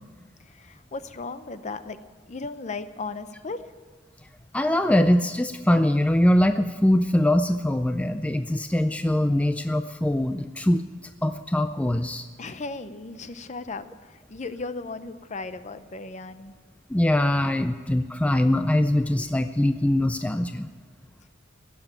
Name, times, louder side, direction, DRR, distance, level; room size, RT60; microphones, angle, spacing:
voice 1, 0.4-2.0 2.3-3.7 12.4-16.5, left 3 dB, 40° left, 12 dB, 0.7 m, -36 dB
voice 2, 4.5-10.8 11.2-12.3 16.9-20.7, left 1 dB, 5° left, 9 dB, 0.4 m, -22 dB
16.5 x 6.8 x 10.0 m, 1.4 s
head